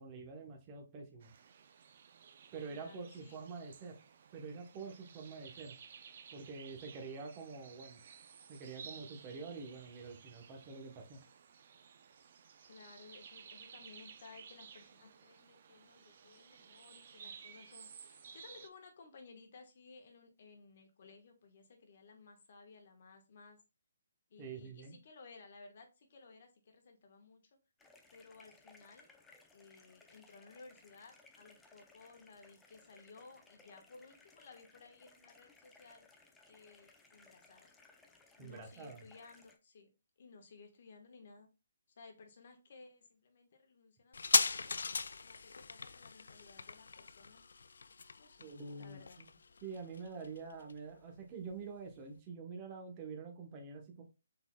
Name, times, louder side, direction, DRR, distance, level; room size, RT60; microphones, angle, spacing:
voice 1, 0.0-1.3 2.5-4.0 4.3-5.7 6.3-8.0 8.5-11.2 24.4-25.0 38.4-39.0 48.4-49.3 49.6-54.0, right 4 dB, 20° right, 2 dB, 0.9 m, -47 dB
sound 1, 1.2-18.7, right 6 dB, 45° right, 0.5 m, -56 dB
voice 2, 2.7-3.4 12.6-23.6 24.3-27.6 28.1-29.1 29.5-36.1 36.5-37.7 38.4-39.9 40.2-41.5 42.0-44.9 45.2-47.4 48.2-48.5 48.8-49.2, left 4 dB, 50° left, 4 dB, 1.3 m, -58 dB
sound 2, 27.8-39.6, left 3 dB, 5° left, 0.5 m, -63 dB
sound 3, 44.1-51.2 51.5-51.6, left 4 dB, 75° left, 0.3 m, -37 dB
6.0 x 3.9 x 2.2 m, 0.29 s
hypercardioid pair, 165°, 0 cm